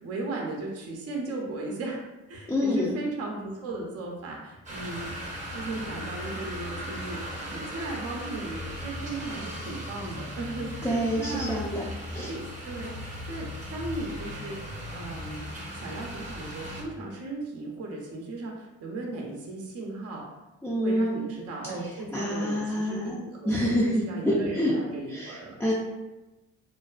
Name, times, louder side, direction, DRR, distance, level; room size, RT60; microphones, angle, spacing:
voice 1, 0.0-2.0 2.3-5.2 5.5-11.6 12.1-14.6 14.9-20.3 20.8-25.6, right 2 dB, 55° right, -1 dB, 0.6 m, -36 dB
voice 2, 2.5-2.9 10.8-11.8 12.1-12.3 20.6-21.3 22.1-23.2 23.5-24.7 25.1-25.7, equal, 5° left, -7 dB, 0.4 m, -27 dB
sound 1, 4.7-16.8, equal, 25° right, 0.7 m, -37 dB
2.5 x 2.2 x 2.3 m, 1.0 s
cardioid pair, 90°, 30 cm